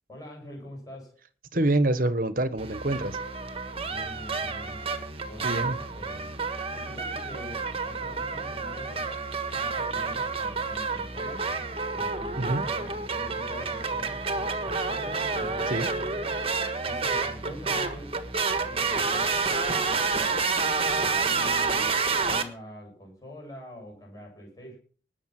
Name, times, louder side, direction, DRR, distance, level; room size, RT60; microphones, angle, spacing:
voice 1, 0.1-1.2 3.9-4.8 5.2-6.3 6.7-9.1 9.5-11.5 11.9-15.7 16.8-18.2 18.6-20.5 20.9-24.8, left 1 dB, 20° left, 7.4 m, -44 dB
voice 2, 1.5-3.2 5.4-5.8 12.4-12.6 15.7-15.9, right 1 dB, 50° right, 1.3 m, -26 dB
sound 1, 2.6-22.4, right 4 dB, 30° right, 1.5 m, -29 dB
20.0 x 7.1 x 5.9 m
head